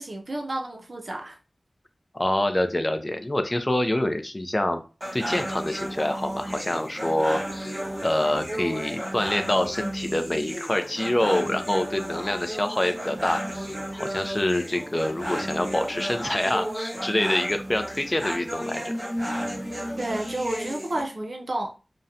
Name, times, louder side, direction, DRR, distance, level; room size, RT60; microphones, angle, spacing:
voice 1, 0.0-1.4 20.0-21.8, right 1 dB, 55° right, 0.5 m, -31 dB
voice 2, 2.1-4.8 5.1-18.9, left 1 dB, 25° left, 0.4 m, -26 dB
sound 1, 5.0-21.0, equal, 30° right, 1.2 m, -33 dB
2.7 x 2.1 x 2.5 m
wide cardioid pair, 65°, 0 cm